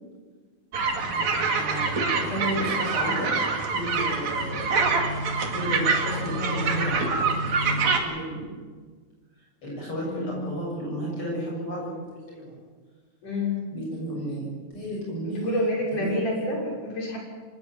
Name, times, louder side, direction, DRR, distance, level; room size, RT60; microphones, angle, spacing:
sound 1, 0.7-8.0, right 4 dB, 60° right, 3.6 m, -25 dB
voice 1, 1.0-3.4 3.7-4.6 5.5-7.1 7.6-8.5 9.6-12.5 13.7-16.5, equal, 40° left, -4 dB, 7.7 m, -33 dB
voice 2, 10.0-10.4 13.2-13.6 15.3-17.2, left 1 dB, 80° left, -2 dB, 8.1 m, -28 dB
25.5 x 19.5 x 7.5 m, 1.5 s
omnidirectional pair, 3.6 m